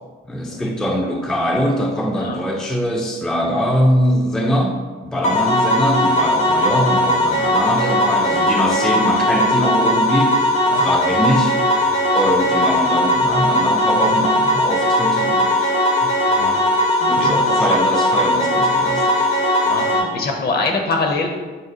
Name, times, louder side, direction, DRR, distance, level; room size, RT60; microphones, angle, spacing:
voice 1, 0.3-4.8 5.0-10.5 10.7-11.6 12.1-15.7 17.1-19.3, equal, 5° left, 2 dB, 0.4 m, -22 dB
sound 1, 5.2-20.0, left 1 dB, 75° left, 1.2 m, -18 dB
voice 2, 17.0-17.6 19.6-21.3, left 3 dB, 50° left, 2 dB, 0.8 m, -24 dB
5.2 x 2.3 x 3.8 m, 1.3 s
cardioid pair, 90°, 20 cm